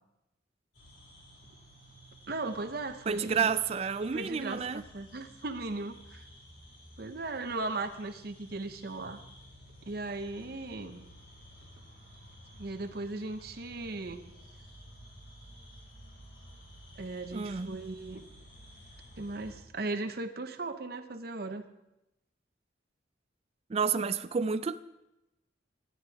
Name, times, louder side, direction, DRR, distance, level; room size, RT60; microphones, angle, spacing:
sound 1, 0.7-19.6, equal, 65° left, 4.5 m, -53 dB
voice 1, 2.3-3.5 4.1-6.2 7.0-9.2 9.9-11.0 12.6-14.2 17.0-18.2 19.2-21.6, right 2 dB, 55° right, 9 dB, 0.8 m, -37 dB
voice 2, 3.1-4.8 17.3-17.7 23.7-24.8, right 6 dB, 30° right, 14 dB, 0.3 m, -30 dB
15.5 x 11.0 x 3.5 m, 0.92 s
head